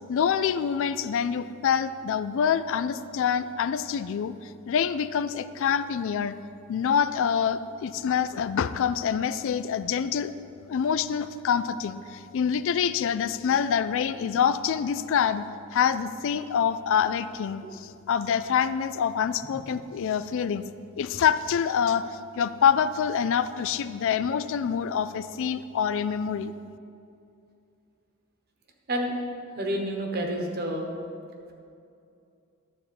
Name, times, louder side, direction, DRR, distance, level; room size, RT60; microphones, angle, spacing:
voice 1, 0.1-4.3 4.7-6.4 6.7-10.3 10.7-15.4 15.7-20.6 21.0-22.1 22.4-26.5, left 7 dB, 60° left, 14 dB, 0.3 m, -26 dB
voice 2, 29.6-30.9, equal, 45° right, 2 dB, 1.2 m, -29 dB
11.5 x 4.3 x 7.0 m, 2.6 s
head